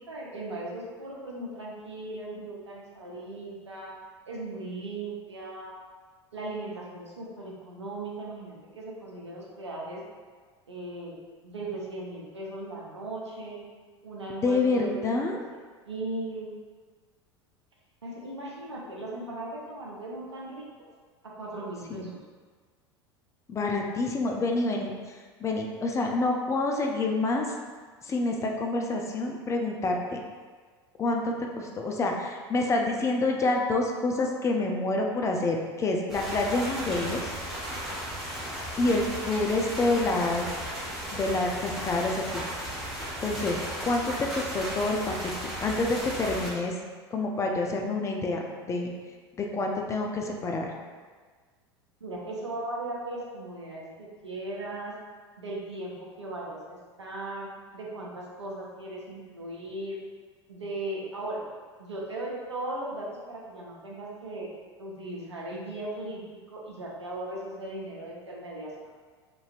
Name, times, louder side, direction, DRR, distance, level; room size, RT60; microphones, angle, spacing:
voice 1, 0.1-3.9 4.3-5.8 6.3-10.0 10.7-11.2 11.4-13.7 14.0-15.0 15.8-16.5 18.0-20.7 21.4-22.2 52.0-54.9 55.4-60.0 60.5-61.4 61.8-64.5 64.8-66.2 66.5-68.9, right 2 dB, 85° right, -3 dB, 0.6 m, -37 dB
voice 2, 14.4-15.4 21.9-22.1 23.5-27.5 28.0-30.2 31.0-37.3 38.8-40.5 41.1-42.5 43.2-46.7 47.1-48.9 49.4-50.7, left 2 dB, 20° left, 1 dB, 0.4 m, -28 dB
sound 1, 36.1-46.5, equal, ahead, 1.2 m, -35 dB
3.0 x 2.6 x 2.4 m, 1.5 s
figure-of-eight pair, 80°, 14 cm